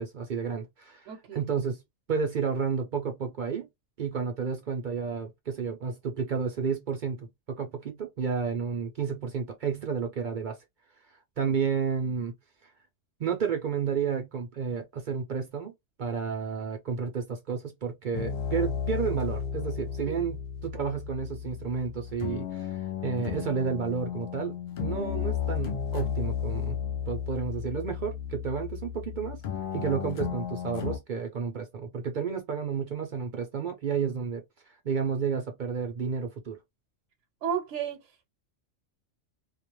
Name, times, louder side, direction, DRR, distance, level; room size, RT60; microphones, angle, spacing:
voice 1, 0.0-1.8 2.1-3.7 4.0-10.6 11.4-12.3 13.2-15.7 16.0-20.4 20.6-26.8 27.1-29.4 29.7-34.4 34.8-36.6, right 6 dB, 60° right, 0.5 m, -31 dB
voice 2, 1.1-1.4 4.4-4.6 20.0-20.2 29.8-29.9 37.4-38.1, right 8 dB, 75° right, 0.9 m, -34 dB
sound 1, 18.1-31.0, left 8 dB, 60° left, 0.6 m, -34 dB
2.4 x 2.1 x 2.8 m
omnidirectional pair, 1.3 m